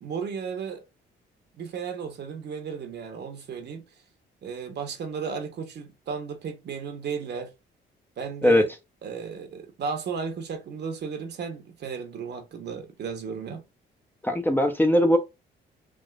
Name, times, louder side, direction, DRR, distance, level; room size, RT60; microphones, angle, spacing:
voice 1, 0.0-0.8 1.6-3.8 4.4-7.5 8.2-8.7 9.0-13.6, right 6 dB, 60° right, 0.9 m, -34 dB
voice 2, 14.2-15.2, left 1 dB, 10° left, 0.6 m, -20 dB
3.5 x 2.4 x 2.3 m
cardioid pair, 90°, 20 cm